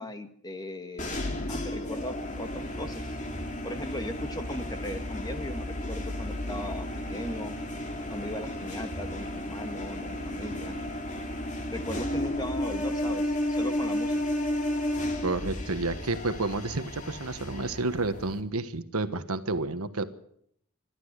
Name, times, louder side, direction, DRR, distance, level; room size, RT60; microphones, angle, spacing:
voice 1, 0.0-3.2 3.6-7.6 8.1-10.8 11.7-14.2, left 1 dB, 20° left, 7 dB, 1.7 m, -38 dB
sound 1, 1.0-18.4, left 1 dB, 35° left, 2.6 m, -33 dB
sound 2, 5.5-11.0, equal, 15° right, 6.8 m, -50 dB
voice 2, 15.2-20.0, right 3 dB, 80° right, 11 dB, 1.4 m, -30 dB
27.0 x 12.5 x 8.1 m, 0.70 s
head